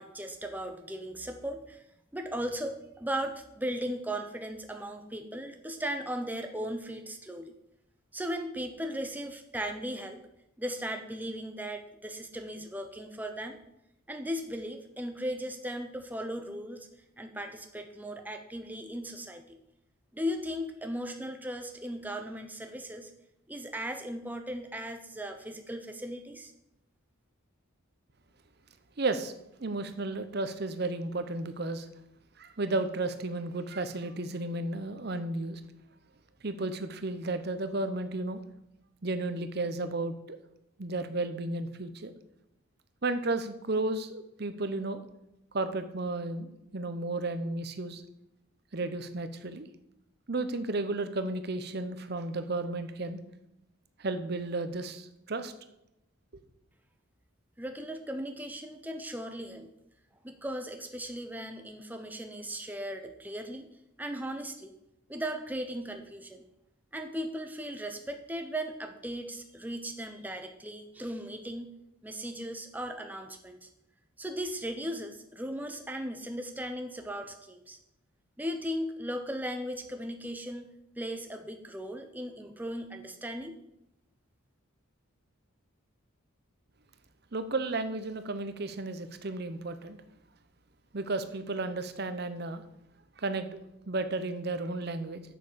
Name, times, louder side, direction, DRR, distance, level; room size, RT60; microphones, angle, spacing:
voice 1, 0.0-1.8 2.1-7.5 8.1-10.2 10.6-13.6 14.1-16.9 17.2-19.6 20.1-23.1 23.5-26.5 57.6-59.7 60.2-63.7 64.0-64.7 65.1-66.4 66.9-71.7 72.0-73.7 74.2-77.8 78.4-83.6, equal, 10° right, 5 dB, 0.7 m, -37 dB
voice 2, 29.0-29.3 29.6-31.9 32.4-35.6 36.4-38.4 39.0-40.4 40.8-42.1 43.0-45.0 45.5-48.0 48.7-49.7 50.3-53.2 54.0-55.5 87.3-90.0 90.9-92.6 93.2-93.5 93.9-95.2, right 2 dB, 50° right, 10 dB, 0.8 m, -33 dB
7.5 x 6.7 x 6.7 m, 0.85 s
head